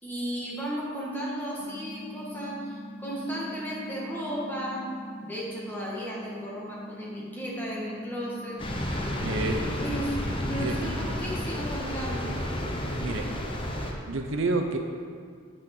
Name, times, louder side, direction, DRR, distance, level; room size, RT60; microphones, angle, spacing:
voice 1, 0.0-4.9 5.2-8.6 9.3-12.3, equal, 10° left, -6 dB, 1.8 m, -35 dB
sound 1, 1.6-11.6, equal, 80° left, 2.1 m, -42 dB
sound 2, 8.6-13.9, equal, 25° left, 0.9 m, -31 dB
voice 2, 9.2-9.6 10.5-10.8 13.0-13.2 14.1-14.8, right 2 dB, 60° right, 3 dB, 0.7 m, -28 dB
8.4 x 6.3 x 6.0 m, 2.1 s
head